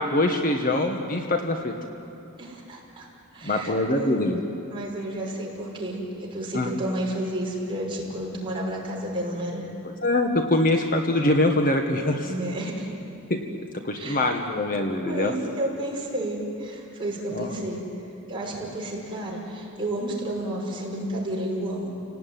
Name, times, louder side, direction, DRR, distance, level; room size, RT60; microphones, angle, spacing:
voice 1, 0.0-1.7 3.4-4.4 6.5-6.7 9.8-12.3 13.3-13.4 13.7-15.3 17.3-17.5, left 1 dB, 40° left, 3 dB, 1.6 m, -24 dB
voice 2, 2.4-3.1 3.3-4.2 4.7-9.6 12.2-12.9 14.0-14.2 15.0-17.8 18.3-22.0, right 1 dB, 25° right, -3 dB, 5.8 m, -31 dB
30.0 x 18.5 x 9.4 m, 2.8 s
head